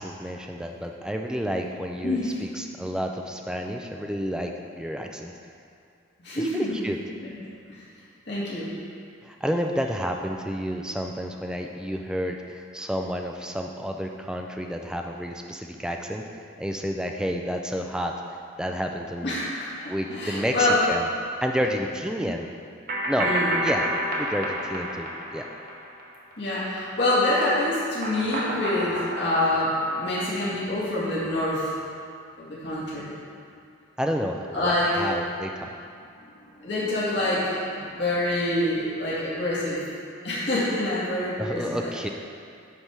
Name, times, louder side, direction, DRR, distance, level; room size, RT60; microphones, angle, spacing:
voice 1, 0.0-5.3 6.4-7.0 9.2-16.2 16.6-18.2 18.6-19.4 19.9-21.1 21.4-22.5 23.1-23.3 23.6-23.9 24.2-25.5 34.0-35.7 41.4-42.1, equal, 5° right, 3 dB, 0.4 m, -30 dB
voice 2, 2.0-2.3 6.2-6.8 7.7-7.8 8.3-8.7 19.2-20.8 23.2-23.6 26.4-31.7 32.4-33.1 34.5-35.0 36.2-39.8 40.2-41.9, left 1 dB, 55° left, -9 dB, 1.9 m, -26 dB
sound 1, 22.9-26.3 26.6-30.6, right 1 dB, 45° right, 1.0 m, -30 dB
9.6 x 3.5 x 6.0 m, 2.4 s
head